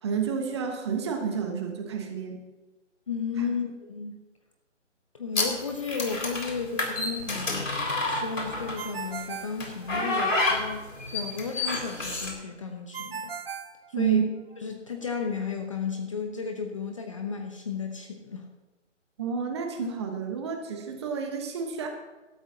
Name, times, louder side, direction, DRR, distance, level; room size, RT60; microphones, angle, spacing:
voice 1, 0.0-2.4 3.4-3.6 13.9-14.2 19.2-21.9, right 7 dB, 20° right, 4 dB, 1.2 m, -30 dB
voice 2, 3.1-4.2 5.1-7.7 8.0-13.3 14.0-14.2 14.6-18.5, left 5 dB, 25° left, 3 dB, 0.7 m, -33 dB
sound 1, 5.4-8.9 9.6-12.3, left 2 dB, 85° left, 3.7 m, -29 dB
Ringtone, 8.8-10.4 12.9-14.6, right 6 dB, 50° right, 0.8 m, -38 dB
17.5 x 12.5 x 2.8 m, 1.1 s
figure-of-eight pair, 155°, 37 cm